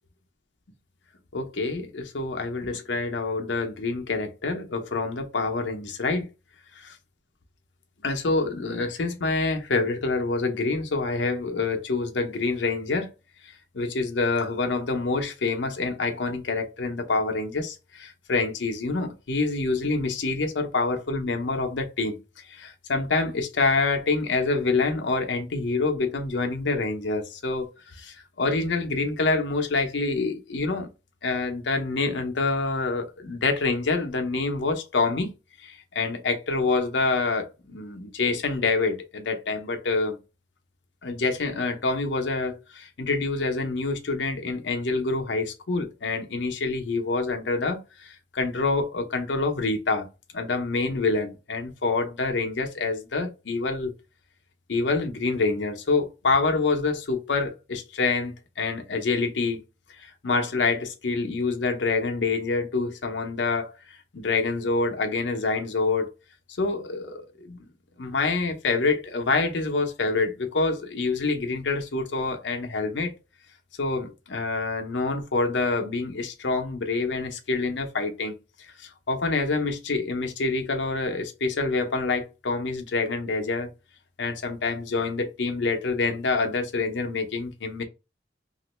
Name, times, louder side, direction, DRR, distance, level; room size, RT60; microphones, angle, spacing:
voice 1, 1.3-6.3 6.8-6.9 8.0-13.1 13.4-22.2 22.5-30.9 31.2-35.3 35.6-40.2 41.0-50.1 50.3-53.9 54.7-59.6 60.0-66.1 66.6-67.7 68.0-73.1 73.8-78.3 78.8-83.7 84.2-87.8, left 3 dB, 75° left, 0.7 m, -26 dB
3.0 x 2.5 x 3.1 m
head